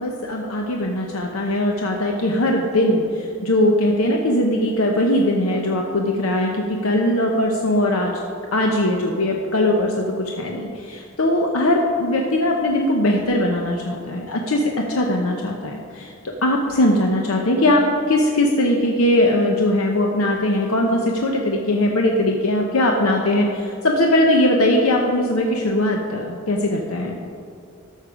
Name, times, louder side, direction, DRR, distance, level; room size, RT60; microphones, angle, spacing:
voice 1, 0.0-8.1 8.5-27.2, left 1 dB, 85° left, 1 dB, 0.8 m, -20 dB
13.0 x 6.6 x 5.0 m, 2.4 s
head